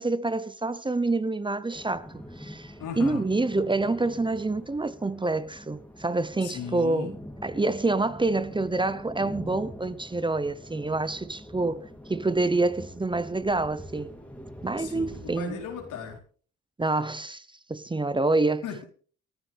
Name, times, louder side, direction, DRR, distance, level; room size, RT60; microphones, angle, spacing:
voice 1, 0.0-7.1 7.4-14.1 14.6-15.6 16.8-18.6, right 2 dB, 15° right, 0.9 m, -27 dB
sound 1, 1.7-16.2, equal, 5° left, 3.3 m, -44 dB
voice 2, 2.8-3.2 6.4-7.1 14.8-16.2 18.6-18.8, left 7 dB, 85° left, 4.3 m, -36 dB
28.0 x 9.8 x 3.5 m
cardioid pair, 90°, 30 cm